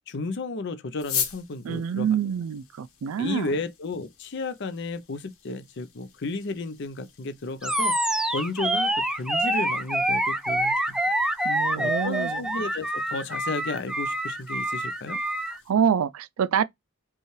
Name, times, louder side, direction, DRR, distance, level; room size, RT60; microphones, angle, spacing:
voice 1, 0.1-2.2 3.2-8.0 8.3-11.0 11.7-15.2, left 3 dB, 55° left, 0.5 m, -33 dB
sound 1, 1.0-15.7, left 8 dB, 85° left, 1.3 m, -41 dB
voice 2, 1.6-3.5 11.4-12.4 15.7-16.6, right 7 dB, 80° right, 0.4 m, -26 dB
Animal, 7.6-15.6, right 1 dB, 5° right, 0.3 m, -26 dB
5.4 x 2.3 x 3.1 m
head